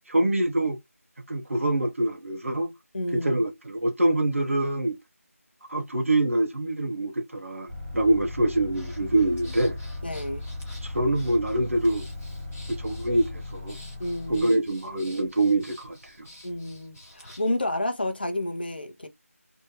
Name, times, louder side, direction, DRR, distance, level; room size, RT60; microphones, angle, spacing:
voice 1, 0.1-0.8 1.3-2.7 3.1-5.0 5.7-9.8 10.8-12.0 12.7-13.8 14.3-16.3, right 1 dB, 60° right, 1.0 m, -25 dB
voice 2, 2.9-3.3 10.0-10.4 14.0-14.5 16.4-19.1, left 1 dB, 40° left, 0.8 m, -30 dB
sound 1, 7.7-14.4, left 2 dB, 20° right, 1.5 m, -37 dB
Breathing, 8.7-17.6, left 1 dB, 5° left, 0.6 m, -50 dB
3.5 x 2.6 x 2.9 m
figure-of-eight pair, 175°, 8 cm